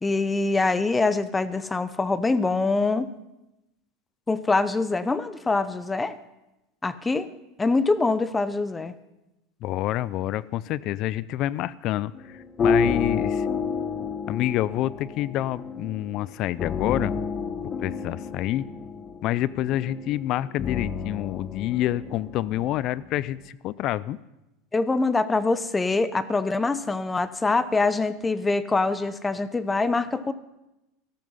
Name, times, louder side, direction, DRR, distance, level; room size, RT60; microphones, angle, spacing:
voice 1, 0.0-3.1 4.3-6.2 6.8-7.3 7.6-8.9 24.7-30.3, left 3 dB, 15° left, 14 dB, 0.7 m, -24 dB
voice 2, 9.6-13.5 14.3-17.1 17.8-18.6 19.2-24.2, left 14 dB, 55° left, 20 dB, 0.4 m, -27 dB
sound 1, 12.1-23.3, left 5 dB, 35° left, 1.0 m, -30 dB
13.5 x 12.5 x 5.6 m, 0.94 s
supercardioid pair, 105°, 0 cm